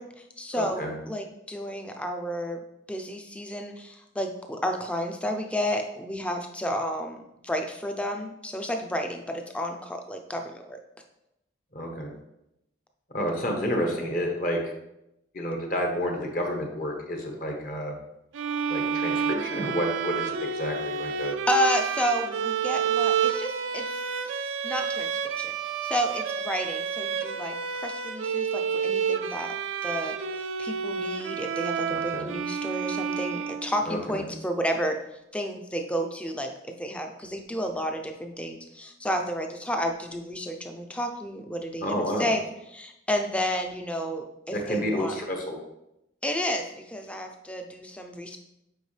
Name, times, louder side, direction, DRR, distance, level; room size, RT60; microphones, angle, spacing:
voice 1, 0.0-2.6 2.9-10.8 21.5-24.0 24.4-25.5 25.8-29.5 29.8-30.1 30.6-35.0 35.3-42.4 42.7-45.2 46.2-48.4, equal, 5° left, 4 dB, 0.5 m, -31 dB
voice 2, 0.5-0.9 11.7-12.1 13.1-14.7 15.3-17.9 18.7-21.3 31.9-32.3 33.9-34.2 41.8-42.3 44.5-45.6, equal, 45° left, 1 dB, 1.2 m, -30 dB
sound 1, 18.3-34.0, right 7 dB, 80° right, 0.5 m, -30 dB
8.2 x 5.1 x 3.3 m, 0.86 s
head